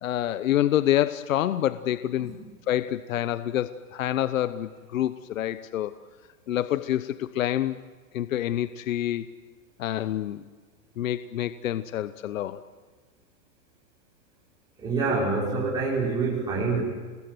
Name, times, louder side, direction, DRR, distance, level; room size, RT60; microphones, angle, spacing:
voice 1, 0.0-2.3 2.7-5.9 6.5-7.8 8.1-9.3 9.8-10.4 11.0-12.6, left 12 dB, 70° left, 13 dB, 1.0 m, -27 dB
voice 2, 14.8-16.8, right 4 dB, 10° right, -5 dB, 4.6 m, -26 dB
28.5 x 21.0 x 8.0 m, 1.4 s
supercardioid pair, 180°, 41 cm